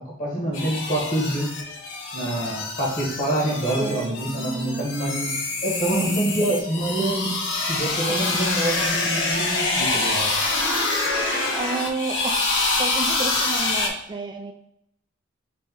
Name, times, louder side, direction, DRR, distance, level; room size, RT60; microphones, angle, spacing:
voice 1, 0.2-1.5 2.1-5.3 5.6-7.4 7.6-10.4, right 1 dB, 45° left, -3 dB, 1.6 m, -26 dB
sound 1, 0.5-13.9, left 3 dB, 70° left, 0.8 m, -26 dB
voice 2, 3.8-4.9 11.5-12.3 12.8-14.5, right 3 dB, 25° right, 3 dB, 0.3 m, -31 dB
3.4 x 3.0 x 4.6 m, 0.77 s
head